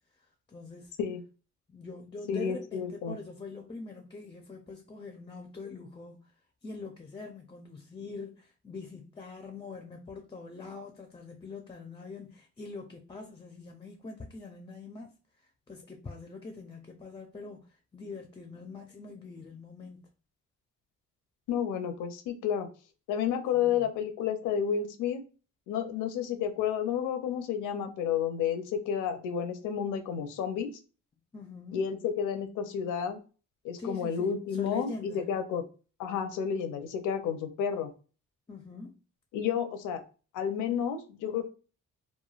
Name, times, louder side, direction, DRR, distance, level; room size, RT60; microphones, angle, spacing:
voice 1, 0.5-0.9 1.7-6.3 6.6-15.1 15.7-20.1 23.5-23.8 31.3-31.8 33.8-35.3 38.5-39.0, left 3 dB, 15° left, 0.4 m, -43 dB
voice 2, 2.3-3.2 21.5-22.7 23.1-25.2 25.7-30.8 31.7-33.2 33.6-35.6 36.0-37.9 39.3-40.0 40.3-41.5, left 8 dB, 85° left, 0.5 m, -31 dB
3.1 x 2.2 x 2.3 m
cardioid pair, 90°, 30 cm